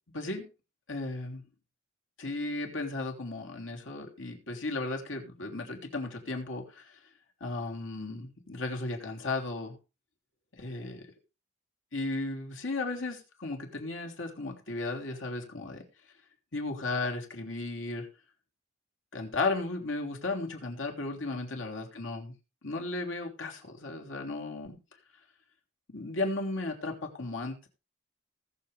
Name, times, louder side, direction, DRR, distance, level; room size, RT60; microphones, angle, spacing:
voice 1, 0.1-0.5 0.9-1.4 2.2-7.0 7.4-9.8 10.5-11.1 11.9-15.8 16.5-18.1 19.1-22.3 22.6-24.8 25.9-27.7, left 2 dB, 80° left, 1 dB, 3.3 m, -35 dB
19.5 x 7.2 x 3.4 m, 0.30 s
head